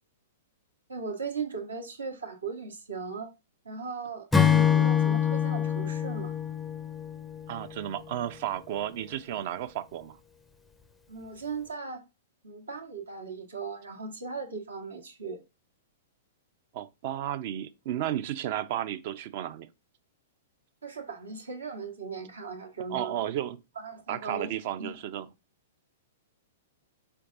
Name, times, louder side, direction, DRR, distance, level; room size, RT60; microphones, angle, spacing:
voice 1, 0.9-3.3 3.6-6.3 11.1-12.0 12.4-15.4 20.8-23.1 23.8-24.5 24.8-24.9, right 4 dB, 80° right, 1.1 m, -38 dB
Acoustic guitar / Strum, 4.3-7.7, left 8 dB, 5° left, 0.4 m, -25 dB
voice 2, 7.5-10.2 16.7-19.7 22.9-23.6 24.1-25.3, right 11 dB, 50° right, 0.4 m, -33 dB
4.6 x 4.5 x 2.5 m
figure-of-eight pair, 110°, 0 cm